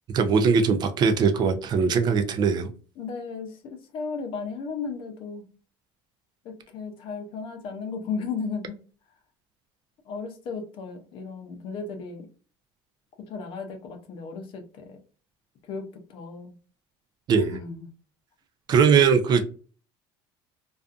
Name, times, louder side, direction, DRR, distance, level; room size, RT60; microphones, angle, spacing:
voice 1, 0.1-2.7 17.3-17.6 18.7-19.4, right 6 dB, 40° right, 0.4 m, -20 dB
voice 2, 3.0-5.5 6.4-8.8 10.1-12.3 13.3-15.0 15.7-16.5 17.4-17.9, left 5 dB, 55° left, 0.6 m, -35 dB
2.5 x 2.3 x 2.4 m
cardioid pair, 130°, 11 cm